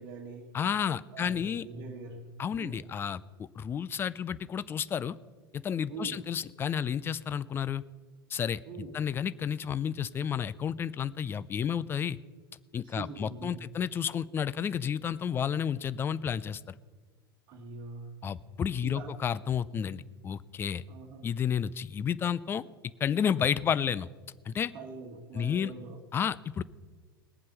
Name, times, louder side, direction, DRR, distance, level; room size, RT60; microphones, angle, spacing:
voice 1, 0.0-0.6 1.1-2.9 5.9-6.2 8.6-8.9 12.8-13.7 17.5-18.2 18.8-19.2 20.9-21.3 24.7-26.0, right 4 dB, 40° right, 0 dB, 1.5 m, -43 dB
voice 2, 0.5-1.7 2.4-5.2 5.5-7.8 8.3-8.6 8.9-12.2 12.7-16.8 18.2-20.8 21.2-22.6 23.0-24.1 24.5-24.7 25.3-25.7 26.1-26.6, left 8 dB, 20° left, 17 dB, 0.4 m, -31 dB
20.0 x 7.5 x 5.6 m, 1.4 s
figure-of-eight pair, 85°, 12 cm